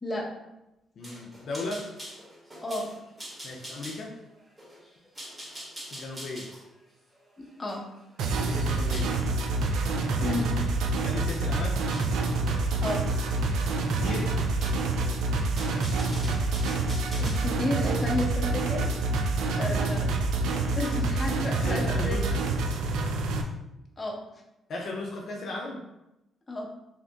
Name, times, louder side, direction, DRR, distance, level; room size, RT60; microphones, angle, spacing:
voice 1, 1.0-1.9 3.4-4.2 5.9-6.5 8.4-9.1 10.2-10.4 10.9-11.8 13.9-14.3 19.5-19.8 21.5-22.4 24.7-25.8, left 2 dB, 60° left, -1 dB, 0.5 m, -36 dB
sound 1, 1.0-9.2 9.6-9.8 10.3-11.0 11.9-12.2 13.1-13.3 13.6-13.7 14.3-15.0 15.4-17.5, equal, 20° right, 1.1 m, -44 dB
voice 2, 7.4-7.8 10.2-10.5 12.8-13.6 17.2-18.9 19.6-20.1 20.7-22.2 24.0-24.2 26.5-26.7, left 1 dB, 25° left, -1 dB, 0.8 m, -32 dB
sound 2, 8.2-23.4, right 3 dB, 85° right, 0.3 m, -27 dB
2.8 x 2.5 x 3.4 m, 0.92 s
cardioid pair, 90°, 0 cm